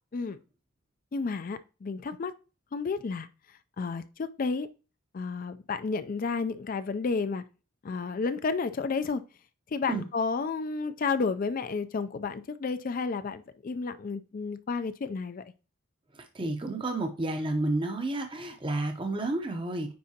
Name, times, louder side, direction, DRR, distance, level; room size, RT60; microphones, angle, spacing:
voice 1, 1.1-2.3 2.7-3.3 3.8-4.7 5.1-7.4 7.8-9.2 9.7-15.4, left 4 dB, 40° left, 0.3 m, -31 dB
voice 2, 16.2-19.9, right 2 dB, 25° right, 0.6 m, -31 dB
9.4 x 3.7 x 2.8 m
head